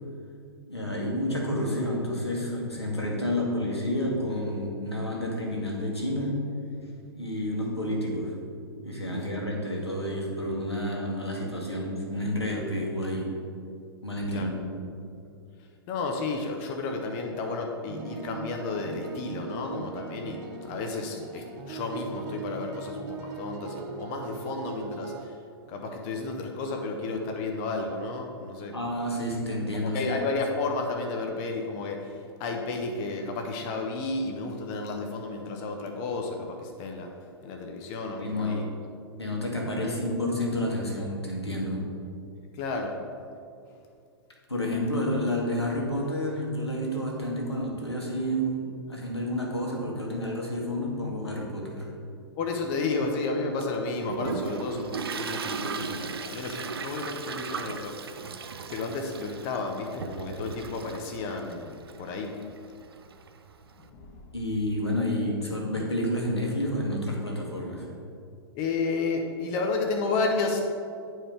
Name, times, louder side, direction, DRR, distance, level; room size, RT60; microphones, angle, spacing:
voice 1, 0.7-6.4 7.1-8.3 8.8-13.3 14.0-14.6 28.7-30.2 38.2-38.7 39.2-41.8 44.5-51.9 64.3-67.9, left 1 dB, 90° left, -2 dB, 1.5 m, -30 dB
voice 2, 9.1-9.4 14.3-14.5 15.9-25.3 25.7-28.7 29.8-32.1 32.4-37.1 37.4-38.7 42.5-43.0 52.4-58.0 58.7-62.4 63.9-64.2 68.5-70.7, left 3 dB, 35° left, 2 dB, 0.8 m, -32 dB
sound 1, 17.9-25.3, right 4 dB, 40° right, 0.9 m, -39 dB
Toilet flush, 53.6-63.8, right 5 dB, 70° right, 0.5 m, -38 dB
9.9 x 4.6 x 3.3 m, 2.4 s
figure-of-eight pair, 105°, 13 cm